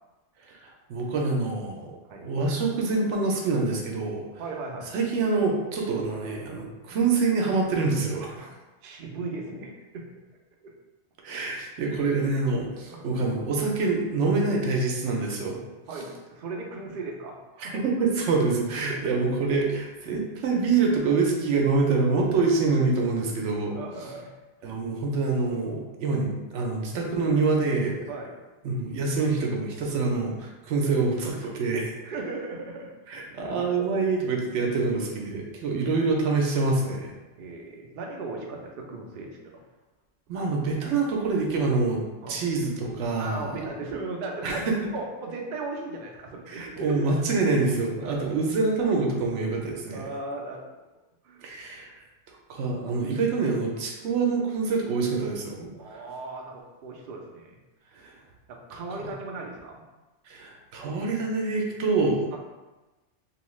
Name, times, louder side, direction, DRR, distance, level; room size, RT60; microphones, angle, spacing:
voice 1, 0.5-1.9 2.2-4.2 4.9-8.5 11.2-15.6 17.6-23.8 24.6-28.1 28.6-31.9 33.1-37.1 40.3-42.0 42.3-43.6 44.4-44.7 46.5-50.1 51.4-52.0 52.5-56.0 57.9-58.1 59.0-59.1 60.3-62.4, right 3 dB, 85° right, 0 dB, 0.9 m, -26 dB
voice 2, 4.4-4.9 8.4-8.5 8.8-10.1 10.6-10.7 12.8-13.1 15.9-17.9 18.9-19.5 23.7-24.3 28.1-28.4 32.0-32.9 33.3-33.5 37.4-39.6 42.2-42.4 43.2-44.6 44.9-47.1 48.0-48.4 49.9-50.7 51.2-51.5 55.7-57.5 58.5-59.8 62.3-62.4, right 3 dB, 60° right, 0 dB, 0.6 m, -37 dB
2.9 x 2.3 x 3.0 m, 1.1 s
omnidirectional pair, 1.2 m